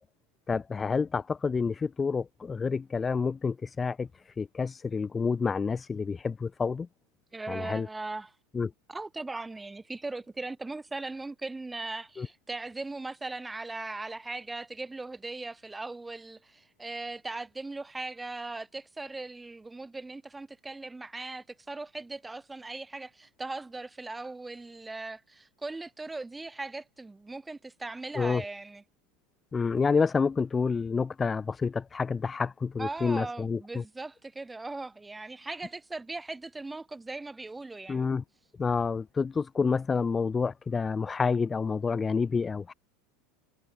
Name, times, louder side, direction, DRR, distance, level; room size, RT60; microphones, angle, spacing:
voice 1, 0.5-4.1 4.4-6.9 7.5-7.9 8.5-8.7 12.2-12.3 28.1-28.4 29.5-33.8 37.9-38.2 38.6-42.7, left 5 dB, 20° left, 0.5 m, -28 dB
voice 2, 7.3-8.3 8.9-28.8 32.8-38.1, right 3 dB, 10° right, 4.0 m, -39 dB
supercardioid pair, 125°, 0 cm